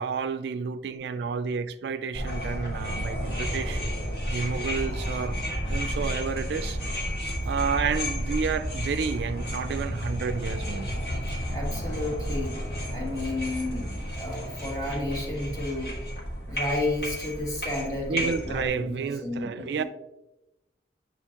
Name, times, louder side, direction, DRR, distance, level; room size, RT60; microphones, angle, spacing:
voice 1, 0.0-3.8 4.3-5.4 5.7-6.8 7.5-10.9 18.0-19.8, right 5 dB, 70° right, 0.3 m, -30 dB
sound 1, 2.1-18.7, equal, 60° left, 2.0 m, -32 dB
voice 2, 11.5-12.6 12.9-15.9 16.5-19.8, left 2 dB, 20° left, 1.5 m, -32 dB
8.5 x 4.3 x 2.8 m
head